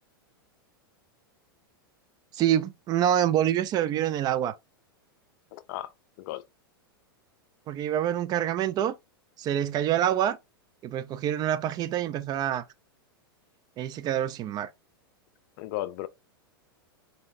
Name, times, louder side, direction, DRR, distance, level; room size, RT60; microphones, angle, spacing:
voice 1, 2.3-4.6 7.7-8.9 9.4-10.4 10.8-12.6 13.8-14.7, right 11 dB, 35° right, 0.4 m, -26 dB
voice 2, 5.5-5.9 6.2-6.4 15.6-16.1, left 15 dB, 55° left, 0.5 m, -34 dB
3.9 x 3.7 x 2.6 m
hypercardioid pair, 110°, 12 cm